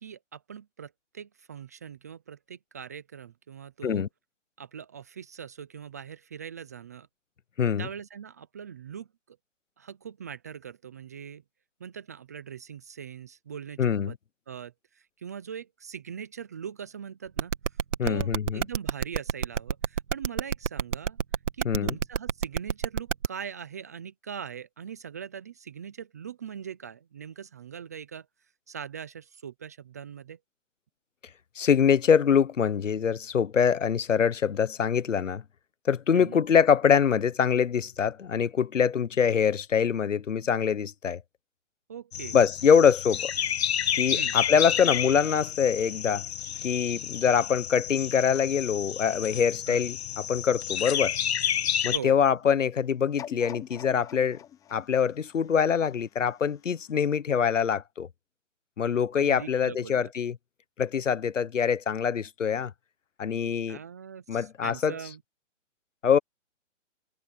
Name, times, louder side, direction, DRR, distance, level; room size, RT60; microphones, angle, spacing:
voice 1, 0.0-4.1 4.6-7.1 7.8-9.4 9.8-11.4 11.8-14.1 14.5-17.5 18.0-21.2 21.6-28.3 28.7-30.4 36.1-36.4 41.9-42.4 44.1-44.4 49.7-49.8 51.9-52.2 59.2-60.1 63.7-65.2, right 8 dB, 15° right, 0.4 m, -41 dB
voice 2, 7.6-7.9 13.8-14.1 18.0-18.6 21.6-21.9 31.6-35.4 35.8-41.2 42.3-43.3 44.0-46.2 46.6-51.2 51.8-54.4 54.7-58.1 58.8-60.4 60.8-62.7 63.2-63.8 64.3-64.9 66.0-66.2, left 7 dB, 85° left, 1.2 m, -24 dB
sound 1, 17.4-23.3, right 7 dB, 75° right, 1.8 m, -27 dB
sound 2, 42.1-52.0, left 9 dB, 60° left, 1.7 m, -30 dB
sound 3, 53.2-56.2 56.8-56.9, left 10 dB, 10° left, 0.9 m, -44 dB
hypercardioid pair, 150°, 37 cm